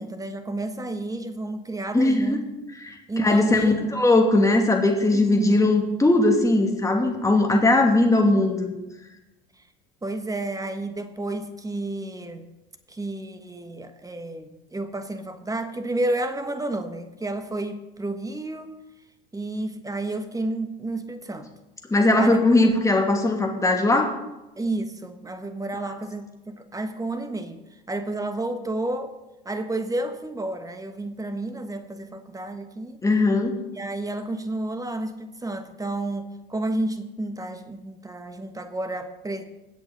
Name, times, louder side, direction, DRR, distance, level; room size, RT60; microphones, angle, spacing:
voice 1, 0.0-2.4 3.1-3.9 5.1-5.7 10.0-12.5 12.9-18.7 19.3-21.5 22.1-22.6 24.6-29.2 29.4-33.0 33.7-39.4, right 2 dB, 10° right, 8 dB, 1.5 m, -31 dB
voice 2, 1.9-2.4 2.8-8.7 21.9-24.1 33.0-33.5, left 2 dB, 10° left, 2 dB, 2.7 m, -19 dB
22.0 x 8.1 x 4.1 m, 1.0 s
hypercardioid pair, 75°, 30 cm